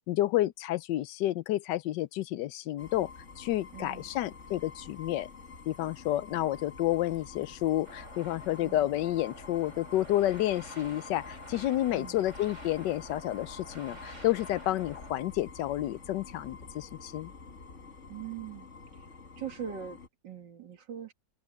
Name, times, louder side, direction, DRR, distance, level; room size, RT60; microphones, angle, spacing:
voice 1, 0.1-3.1 3.4-5.3 5.7-17.3, left 14 dB, 85° left, 1.2 m, -30 dB
sound 1, 2.8-20.1, left 4 dB, 45° left, 1.9 m, -48 dB
voice 2, 3.7-4.1 8.6-8.9 11.9-12.3 18.1-18.7 18.9-19.1 19.4-21.1, right 8 dB, 85° right, 2.6 m, -42 dB
sound 2, 7.8-15.1, right 1 dB, 40° right, 8.1 m, -50 dB
open air
omnidirectional pair, 1.9 m